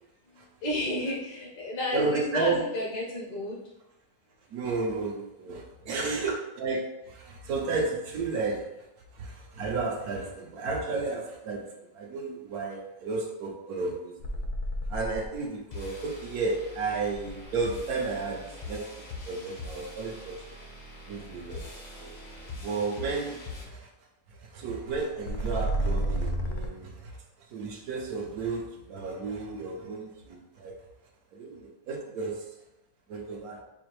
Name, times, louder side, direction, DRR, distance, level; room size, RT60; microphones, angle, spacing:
voice 1, 0.3-3.6, left 1 dB, 90° left, -4 dB, 1.8 m, -31 dB
voice 2, 1.9-2.6 4.5-8.7 9.1-14.4 14.9-18.8 19.3-20.4 21.1-21.7 22.0-22.1 22.6-23.9 24.3-27.2 27.5-30.8 31.3-32.4 33.1-33.6, right 3 dB, 65° right, 0 dB, 1.0 m, -33 dB
sound 1, 14.2-15.5 17.1-18.0 25.0-26.7, right 1 dB, 70° left, 1.0 m, -30 dB
sound 2, 15.7-23.7, left 2 dB, 55° left, 0.4 m, -43 dB
4.9 x 2.5 x 3.1 m, 0.95 s
omnidirectional pair, 1.9 m